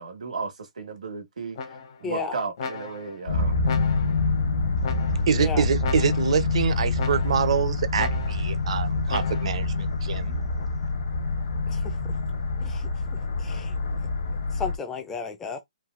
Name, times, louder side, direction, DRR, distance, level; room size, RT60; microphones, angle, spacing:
voice 1, 0.0-1.6 2.0-3.6, right 4 dB, 85° right, 1.3 m, -34 dB
sound 1, 1.5-2.1 2.6-3.2 3.6-4.3 4.8-5.4 5.8-6.4 7.0-7.6 8.0-8.6 9.1-9.7, left 5 dB, 40° left, 0.8 m, -36 dB
voice 2, 2.0-2.4 5.4-5.6 11.7-11.9 12.6-12.9 13.4-13.8 14.5-15.6, left 5 dB, 10° left, 0.4 m, -33 dB
sound 2, 3.3-14.8, left 3 dB, 60° left, 1.2 m, -26 dB
voice 3, 5.3-10.4, right 7 dB, 50° right, 0.6 m, -26 dB
3.3 x 2.6 x 2.4 m
hypercardioid pair, 165°, 4 cm